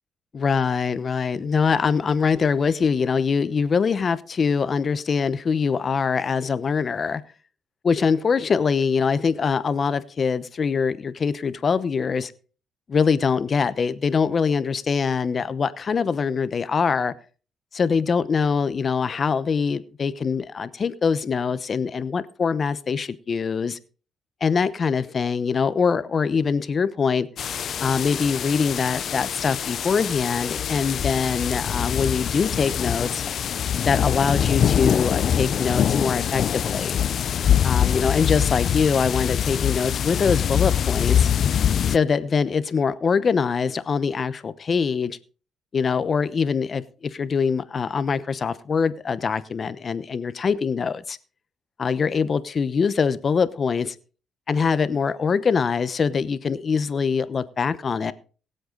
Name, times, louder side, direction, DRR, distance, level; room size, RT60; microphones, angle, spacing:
voice 1, 0.3-7.2 7.8-12.3 12.9-17.1 17.7-23.8 24.4-27.3 27.8-33.2 33.8-37.0 37.6-41.3 41.9-45.2 45.7-51.2 51.8-53.9 54.5-58.1, left 5 dB, 45° left, 0.9 m, -23 dB
sound 1, 27.4-42.0, left 9 dB, 60° left, 0.5 m, -24 dB
22.5 x 7.9 x 3.9 m
cardioid pair, 90°, 0 cm